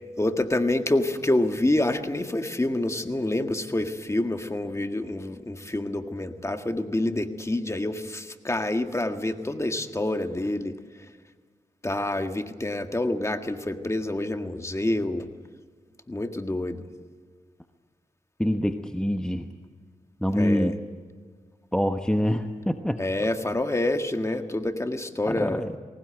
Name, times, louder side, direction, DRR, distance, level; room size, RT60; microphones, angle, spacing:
voice 1, 0.2-10.7 11.8-15.3 16.1-16.9 20.3-20.7 23.0-25.6, left 1 dB, 20° left, 6 dB, 1.8 m, -27 dB
voice 2, 18.4-19.5 20.2-20.8 21.7-23.0 25.3-25.7, equal, 5° left, 6 dB, 1.1 m, -25 dB
20.0 x 18.5 x 9.1 m, 1.5 s
cardioid pair, 60°, 14 cm